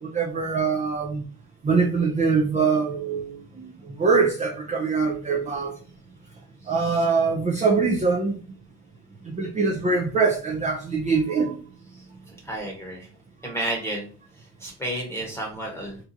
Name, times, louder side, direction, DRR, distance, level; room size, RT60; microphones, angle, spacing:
voice 1, 0.0-1.2 1.6-5.7 6.7-8.3 9.2-11.6, right 4 dB, 15° right, 0.4 m, -23 dB
voice 2, 6.6-7.0 11.9-12.0 12.4-13.1 13.4-14.1 14.3-16.0, right 1 dB, 5° left, 1.0 m, -32 dB
2.8 x 2.3 x 3.9 m
supercardioid pair, 90°, 44 cm